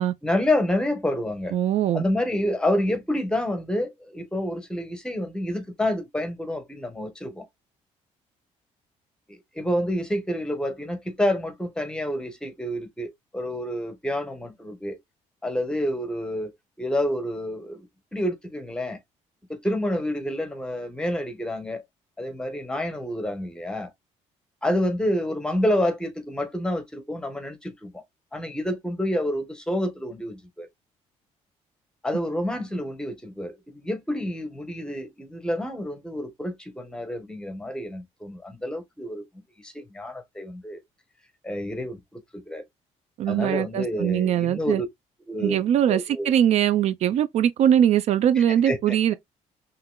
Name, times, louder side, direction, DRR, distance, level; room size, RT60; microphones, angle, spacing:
voice 1, 0.2-1.5 1.9-7.5 9.3-15.0 15.4-16.5 16.8-17.9 18.1-19.0 19.5-21.8 22.2-23.9 24.6-28.0 28.3-30.7 32.0-40.8 41.4-42.6 43.3-44.9 45.3-46.3 48.4-48.9, left 1 dB, 5° left, 1.2 m, -28 dB
voice 2, 1.5-2.0 43.2-44.8 45.4-49.1, right 10 dB, 60° right, 0.5 m, -21 dB
5.8 x 3.2 x 2.2 m
cardioid pair, 145°, 13 cm